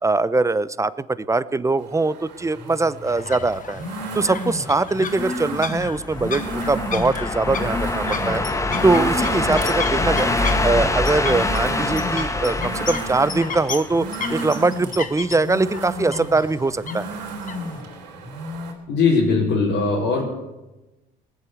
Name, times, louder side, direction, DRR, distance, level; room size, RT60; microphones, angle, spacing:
voice 1, 0.0-3.8 4.1-8.4 8.8-10.3 10.6-17.1, right 3 dB, 15° right, 17 dB, 0.7 m, -22 dB
sound 1, 1.8-18.7, right 1 dB, 80° right, 3.5 m, -32 dB
sound 2, 3.0-17.8, left 6 dB, 40° left, 1.5 m, -35 dB
sound 3, 5.8-14.3, left 2 dB, 15° left, 1.4 m, -25 dB
voice 2, 18.9-20.2, left 4 dB, 65° left, -6 dB, 4.7 m, -19 dB
19.5 x 7.7 x 8.2 m, 1.0 s
hypercardioid pair, 65°, 21 cm